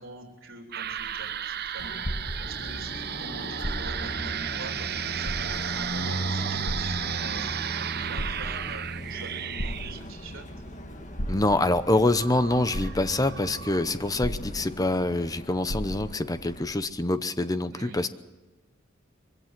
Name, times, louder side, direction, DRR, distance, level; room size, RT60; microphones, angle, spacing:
voice 1, 0.0-7.5 7.7-10.5 17.7-18.1, right 3 dB, 80° right, 2 dB, 3.2 m, -45 dB
sound 1, 0.7-13.9, right 9 dB, 55° right, 0.8 m, -35 dB
sound 2, 0.8-2.9 3.5-4.2 4.6-4.7 5.2-5.9 6.7-7.5 8.0-8.8 9.6-10.3 11.2-11.9 12.4-12.5 12.7-13.4 14.2-15.0 15.3-15.4 15.7-16.3 17.0-17.1, equal, 70° left, 2.3 m, -34 dB
Car passing by, 1.8-16.7, equal, 40° left, 1.9 m, -38 dB
voice 2, 11.3-18.1, left 2 dB, 20° left, 13 dB, 0.9 m, -25 dB
23.0 x 16.0 x 7.5 m, 1.2 s
head